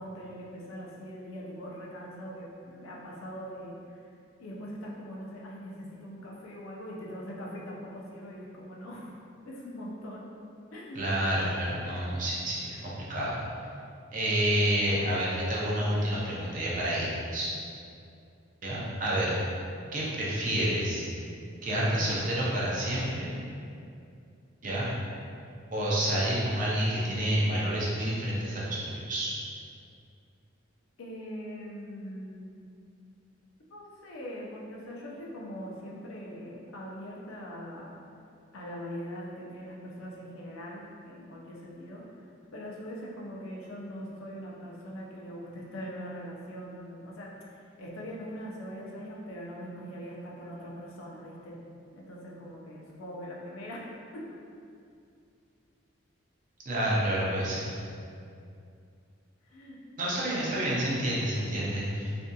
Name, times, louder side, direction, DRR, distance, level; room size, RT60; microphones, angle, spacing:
voice 1, 0.0-4.0 4.4-9.2 9.5-10.3 10.7-11.0 18.7-19.0 31.0-32.5 33.7-38.0 38.5-42.0 42.5-51.6 51.9-54.3 59.4-60.4, equal, 80° left, -3 dB, 0.5 m, -42 dB
voice 2, 10.9-13.4 14.1-17.1 17.3-17.5 18.6-19.4 19.9-21.1 21.6-23.3 24.6-24.9 25.7-29.3 56.7-57.7 60.0-62.1, right 1 dB, 40° right, -6 dB, 0.5 m, -29 dB
2.7 x 2.5 x 2.2 m, 2.5 s
head